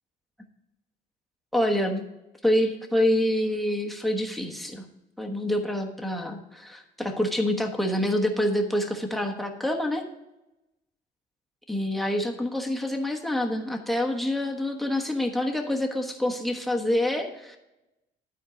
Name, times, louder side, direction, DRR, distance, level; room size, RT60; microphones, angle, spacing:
voice 1, 1.5-2.1 2.4-4.8 5.2-10.0 11.7-17.6, left 1 dB, ahead, 4 dB, 1.2 m, -26 dB
12.0 x 4.6 x 5.0 m, 0.95 s
cardioid pair, 110°, 17 cm